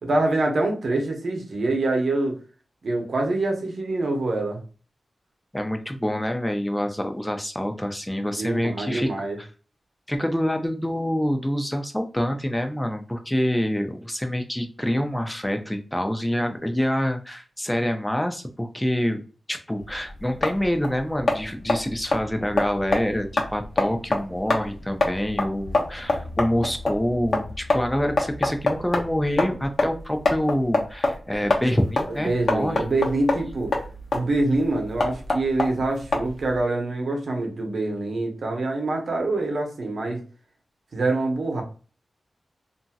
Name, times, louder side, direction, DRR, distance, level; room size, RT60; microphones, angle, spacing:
voice 1, 0.0-2.4 2.8-4.6 8.4-9.4 32.1-33.7 34.1-40.2 40.9-41.6, right 2 dB, 70° right, 2 dB, 0.9 m, -25 dB
voice 2, 5.5-9.3 10.1-19.2 19.5-32.8, equal, 10° left, 5 dB, 0.6 m, -26 dB
sound 1, 19.8-36.6, left 2 dB, 70° left, 0.8 m, -27 dB
2.8 x 2.6 x 2.3 m, 0.36 s
cardioid pair, 60°, 0 cm